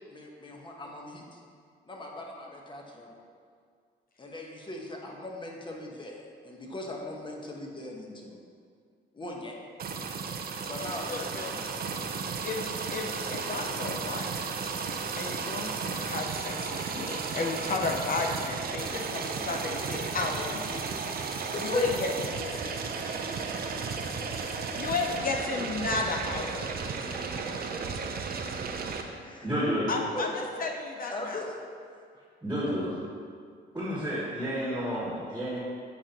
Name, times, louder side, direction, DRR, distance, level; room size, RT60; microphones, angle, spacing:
voice 1, 0.1-1.4 1.8-3.1 4.2-8.4 9.1-9.5 10.6-11.2 15.3-15.5 17.5-17.8 21.1-22.1 22.8-23.2 23.8-24.5 27.1-27.5 29.2-29.5 30.1-30.3 31.1-31.6, left 1 dB, 25° left, 0 dB, 1.2 m, -40 dB
sound 1, 9.8-29.0, right 5 dB, 50° right, 0.6 m, -34 dB
voice 2, 11.1-11.6 12.4-14.5 15.2-20.8 21.6-22.8 24.8-27.0 29.9-31.4, left 3 dB, 45° left, 2 dB, 0.6 m, -33 dB
voice 3, 29.4-29.9 32.4-33.0 33.7-35.6, equal, 10° right, -6 dB, 1.7 m, -30 dB
8.5 x 5.3 x 2.9 m, 2.1 s
cardioid pair, 90°, 20 cm